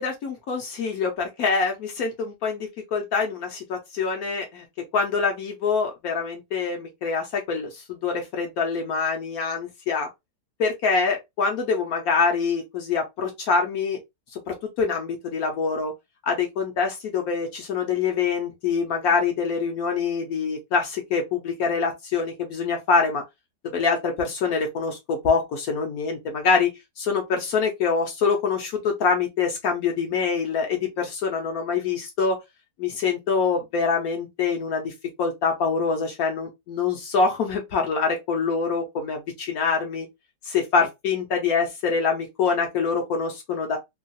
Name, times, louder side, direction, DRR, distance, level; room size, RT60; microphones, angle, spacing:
voice 1, 0.0-4.6 4.9-10.1 10.6-14.0 14.3-15.9 16.2-23.2 23.7-26.7 27.0-32.4 32.8-34.9 35.2-40.1 40.4-43.8, left 5 dB, 65° left, 1.1 m, -25 dB
3.0 x 2.3 x 2.6 m
omnidirectional pair, 1.8 m